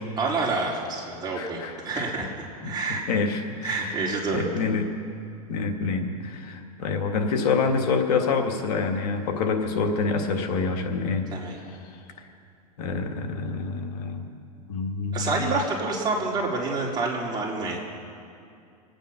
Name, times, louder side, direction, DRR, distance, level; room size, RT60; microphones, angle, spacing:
voice 1, 0.2-1.6 1.8-2.3 2.6-3.1 3.6-4.4 11.3-11.6 15.1-17.8, right 3 dB, 20° right, -3 dB, 3.5 m, -28 dB
voice 2, 1.4-2.1 2.6-2.8 3.1-5.0 5.5-11.3 12.2-12.3 12.8-14.2 14.7-15.6, left 4 dB, 70° left, 4 dB, 1.7 m, -27 dB
24.5 x 9.1 x 5.7 m, 2.4 s
hypercardioid pair, 120°, 20 cm